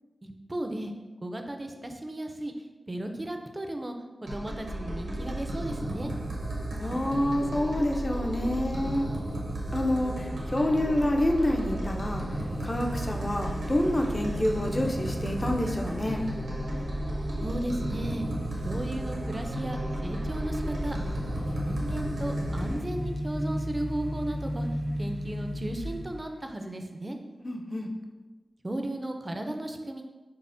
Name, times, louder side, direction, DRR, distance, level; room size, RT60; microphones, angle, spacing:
voice 1, 0.2-0.9 1.2-2.5 2.9-3.9 4.2-6.1 17.4-18.3 18.6-21.0 21.6-24.7 25.0-27.2 28.6-30.0, right 1 dB, 30° right, 5 dB, 0.4 m, -35 dB
sound 1, 4.3-22.8, right 1 dB, 90° right, 0.8 m, -34 dB
voice 2, 6.8-9.1 9.7-12.2 12.6-16.2 27.4-27.9, left 1 dB, 35° left, 2 dB, 0.5 m, -27 dB
sound 2, 12.1-26.4, equal, 80° left, 1.0 m, -36 dB
5.3 x 2.1 x 2.5 m, 1.2 s
cardioid pair, 60°, 0 cm